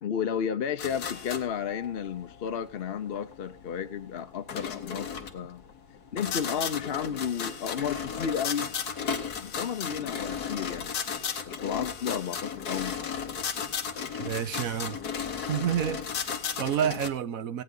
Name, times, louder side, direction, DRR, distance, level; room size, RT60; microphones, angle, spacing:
voice 1, 0.0-5.6 6.1-8.7 9.4-10.9 11.5-13.0, left 8 dB, 50° left, 0.7 m, -32 dB
sound 1, 0.8-17.1, left 7 dB, 85° left, 1.7 m, -35 dB
voice 2, 14.2-15.0 15.5-17.6, right 9 dB, 65° right, 1.2 m, -30 dB
16.5 x 9.5 x 3.8 m
omnidirectional pair, 1.6 m